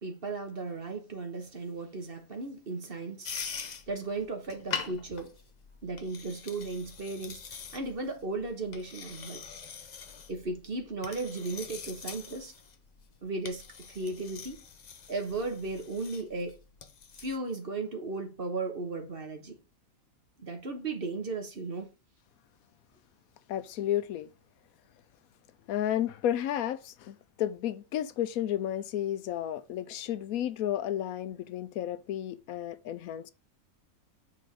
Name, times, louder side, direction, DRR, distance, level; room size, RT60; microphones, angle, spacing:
voice 1, 0.0-3.3 3.9-5.3 5.8-7.4 7.7-9.4 10.3-12.5 13.2-14.6 15.1-16.6 17.2-19.5 20.4-21.9, right 3 dB, 40° right, 1.4 m, -36 dB
sound 1, 3.2-17.4, left 6 dB, 50° left, 0.5 m, -44 dB
voice 2, 23.5-24.3 25.7-33.3, left 11 dB, 80° left, 1.0 m, -32 dB
6.9 x 3.8 x 5.0 m
omnidirectional pair, 1.5 m